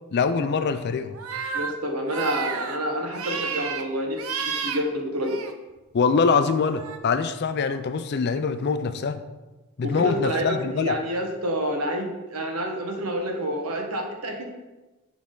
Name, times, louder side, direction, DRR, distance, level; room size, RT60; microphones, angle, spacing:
voice 1, 0.1-1.2 5.9-9.2 9.8-11.0, left 5 dB, 50° left, 11 dB, 0.4 m, -24 dB
sound 1, 1.1-1.7 2.1-2.8 3.1-3.8 4.2-4.8 5.2-5.5 6.6-7.0, right 6 dB, 70° right, 0.6 m, -31 dB
voice 2, 1.5-5.4 9.8-14.4, equal, 90° right, 2 dB, 1.1 m, -28 dB
8.5 x 3.5 x 3.8 m, 1.1 s
head